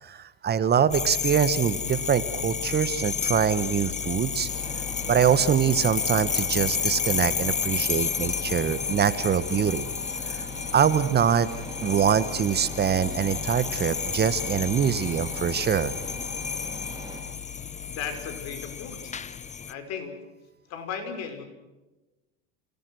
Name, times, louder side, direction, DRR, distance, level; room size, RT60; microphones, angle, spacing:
voice 1, 0.0-4.5 5.1-9.9 10.2-10.5 10.7-11.5 11.8-15.9, right 8 dB, 30° right, 14 dB, 1.3 m, -24 dB
sound 1, 0.9-19.7, left 7 dB, 20° left, 1.1 m, -31 dB
sound 2, 4.5-17.2, right 3 dB, 15° right, 6.8 m, -42 dB
voice 2, 17.9-19.2 19.7-20.2 20.7-21.4, left 6 dB, 55° left, 6 dB, 5.9 m, -36 dB
27.5 x 18.5 x 6.3 m, 1.1 s
hypercardioid pair, 95°, 31 cm